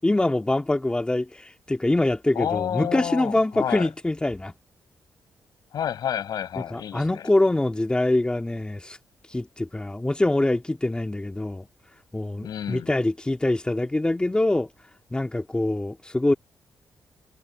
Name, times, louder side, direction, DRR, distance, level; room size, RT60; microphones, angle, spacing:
voice 1, 0.0-4.5 6.7-9.0 9.3-11.7 12.1-14.7 15.1-16.3, left 2 dB, 15° left, 2.5 m, -24 dB
voice 2, 2.3-3.9 5.7-7.3 12.4-12.9, left 9 dB, 80° left, 6.6 m, -30 dB
cardioid pair, 100°, 7 cm